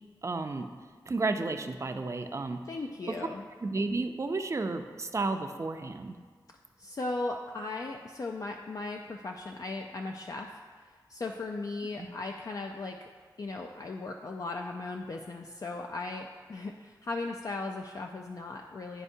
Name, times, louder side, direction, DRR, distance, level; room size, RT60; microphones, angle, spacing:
voice 1, 0.2-0.7 1.1-2.6 3.1-3.2 3.6-6.2 12.0-12.1, right 3 dB, 40° right, 7 dB, 0.4 m, -32 dB
voice 2, 2.7-3.4 6.8-10.6 11.1-13.1 13.4-19.0, left 3 dB, 45° left, 2 dB, 0.4 m, -37 dB
11.0 x 4.3 x 2.7 m, 1.5 s
wide cardioid pair, 95°, 8 cm